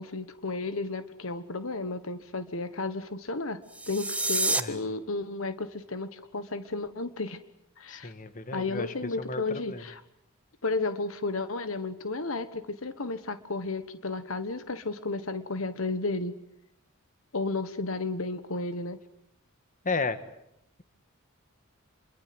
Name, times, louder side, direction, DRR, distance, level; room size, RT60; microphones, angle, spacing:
voice 1, 0.0-7.4 7.8-8.1 8.5-10.0 10.6-16.4 17.3-19.0, left 3 dB, 70° left, 12 dB, 1.3 m, -33 dB
sound 1, 3.6-4.6, right 2 dB, 5° right, 1.3 m, -28 dB
voice 2, 7.9-9.8 19.8-20.2, left 3 dB, 40° left, 11 dB, 1.7 m, -33 dB
27.5 x 23.0 x 7.8 m, 0.77 s
head